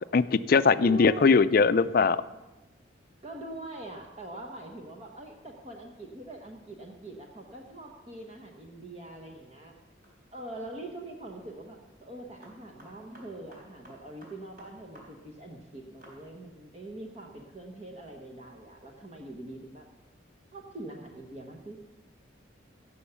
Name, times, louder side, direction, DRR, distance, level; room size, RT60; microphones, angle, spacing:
voice 1, 0.1-2.2, left 5 dB, 50° left, 14 dB, 0.4 m, -21 dB
voice 2, 0.6-1.4 3.2-9.7 10.3-19.9 20.5-21.9, right 2 dB, 30° right, 2 dB, 1.1 m, -43 dB
sound 1, 10.0-10.4 12.4-15.1 15.3-15.4 16.0-16.2, equal, 50° right, 4.1 m, -52 dB
17.0 x 7.0 x 6.9 m, 1.1 s
head